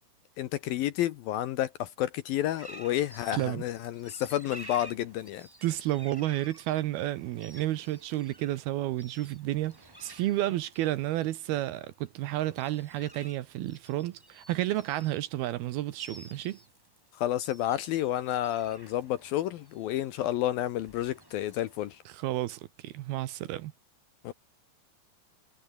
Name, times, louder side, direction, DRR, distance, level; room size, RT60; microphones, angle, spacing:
voice 1, 0.4-5.5 17.1-22.0 24.2-24.3, left 13 dB, 75° left, 2.4 m, -30 dB
sound 1, 2.6-22.3, right 1 dB, 5° right, 3.7 m, -53 dB
voice 2, 3.3-3.6 5.6-16.6 22.1-23.7, right 15 dB, 75° right, 2.6 m, -31 dB
omnidirectional pair, 5.0 m